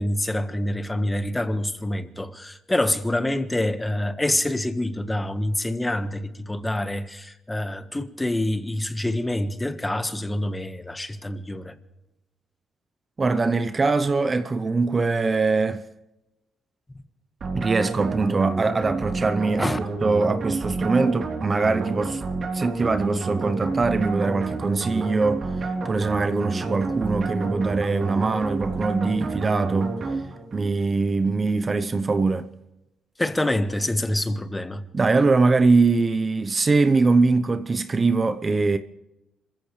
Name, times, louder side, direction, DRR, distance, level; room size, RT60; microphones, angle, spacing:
voice 1, 0.0-11.7 19.6-19.8 33.2-34.8, left 1 dB, 10° left, 1.4 m, -26 dB
voice 2, 13.2-15.8 17.5-19.7 20.0-22.2 22.5-25.5 25.8-30.0 30.5-32.5 34.9-38.8, right 3 dB, 30° right, 0.8 m, -22 dB
sound 1, 17.4-30.7, right 3 dB, 50° right, 3.4 m, -30 dB
26.0 x 15.0 x 3.3 m
cardioid pair, 90°, 0 cm